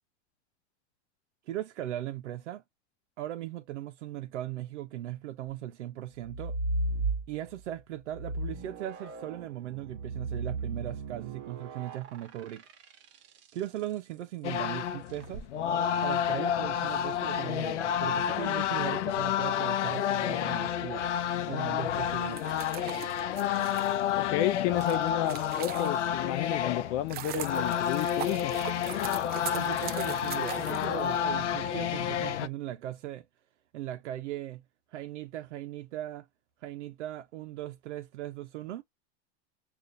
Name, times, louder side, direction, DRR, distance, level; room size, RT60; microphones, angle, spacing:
voice 1, 1.5-2.6 3.2-6.6 7.3-12.6 13.5-15.5 16.0-21.1 21.5-22.4 29.5-33.3 33.7-34.6 34.9-36.3 36.6-38.8, right 13 dB, 85° right, 0.6 m, -38 dB
sound 1, 6.2-7.6 8.1-13.6 15.1-15.5, right 2 dB, 45° right, 1.0 m, -35 dB
sound 2, 14.4-32.5, left 9 dB, 90° left, 0.6 m, -30 dB
sound 3, 22.2-26.3 26.8-31.5, right 11 dB, 30° right, 0.4 m, -41 dB
voice 2, 24.1-28.5, left 13 dB, 45° left, 0.5 m, -31 dB
6.6 x 2.4 x 2.6 m
hypercardioid pair, 110°, 34 cm